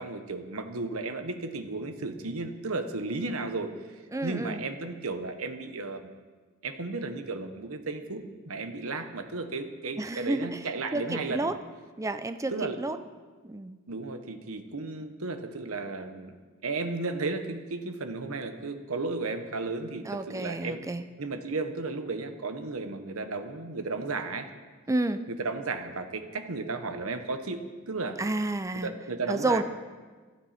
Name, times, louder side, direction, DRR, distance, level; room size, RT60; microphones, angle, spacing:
voice 1, 0.0-3.7 4.2-6.1 6.6-11.5 12.5-12.8 13.9-16.4 16.6-20.8 21.2-24.5 25.3-28.2 28.8-29.6, right 3 dB, 70° right, 7 dB, 1.1 m, -34 dB
voice 2, 4.1-4.6 10.0-10.6 10.9-11.6 12.0-12.5 12.8-13.0 13.4-13.8 20.1-21.0 24.9-25.2 28.2-28.9 29.3-29.6, right 2 dB, 15° right, 10 dB, 0.5 m, -30 dB
16.0 x 12.0 x 4.3 m, 1.4 s
head